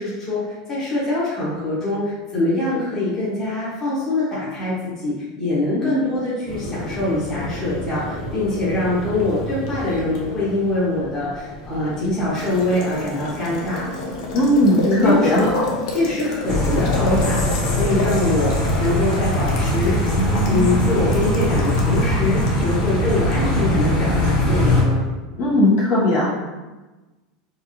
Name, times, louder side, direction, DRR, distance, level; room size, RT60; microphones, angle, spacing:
voice 1, 0.0-13.9 14.8-15.6 15.9-20.1 20.5-25.0, left 2 dB, 15° left, -10 dB, 1.3 m, -23 dB
Boiling, 6.5-24.4, left 2 dB, 80° left, 0.8 m, -31 dB
voice 2, 14.3-15.6 25.4-26.3, left 1 dB, 50° left, -7 dB, 1.4 m, -18 dB
traffic medium Haiti horn honks, 16.4-24.8, left 1 dB, 30° left, 1.1 m, -20 dB
4.5 x 2.6 x 2.8 m, 1.2 s
supercardioid pair, 165°, 3 cm